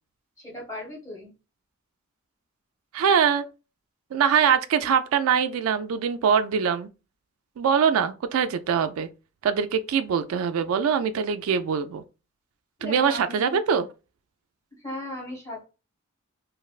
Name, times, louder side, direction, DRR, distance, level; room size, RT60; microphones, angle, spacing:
voice 1, 0.4-1.3 12.8-13.6 14.8-15.6, left 1 dB, 15° left, 1.4 m, -37 dB
voice 2, 2.9-3.5 4.1-6.9 7.6-9.1 9.4-12.0 12.8-13.9, right 7 dB, 75° right, 0.3 m, -23 dB
3.2 x 2.6 x 2.3 m
head